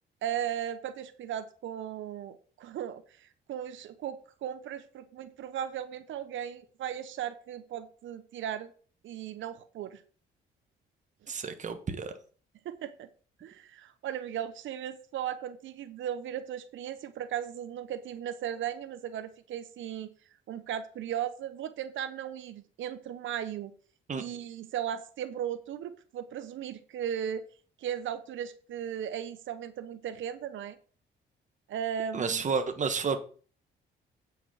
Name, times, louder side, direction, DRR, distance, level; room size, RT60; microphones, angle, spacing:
voice 1, 0.2-8.7 9.0-10.0 12.6-13.1 13.4-20.1 20.5-23.7 24.2-27.4 27.8-30.8 31.7-32.4, right 9 dB, 75° right, 0.9 m, -36 dB
voice 2, 11.3-12.1 24.1-24.2 32.1-33.2, right 5 dB, 40° right, 1.4 m, -31 dB
8.5 x 6.0 x 5.6 m
cardioid pair, 90°, 20 cm